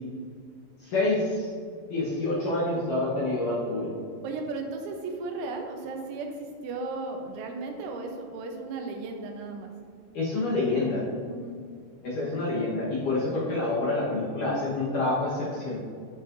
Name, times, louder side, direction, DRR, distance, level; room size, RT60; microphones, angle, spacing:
voice 1, 0.8-1.5 1.9-3.9 10.1-11.0 12.0-15.8, left 2 dB, 65° left, -8 dB, 2.1 m, -27 dB
voice 2, 4.2-9.7 11.3-11.6, right 3 dB, 85° right, 3 dB, 3.2 m, -35 dB
12.5 x 5.7 x 2.6 m, 2.1 s
omnidirectional pair, 5.4 m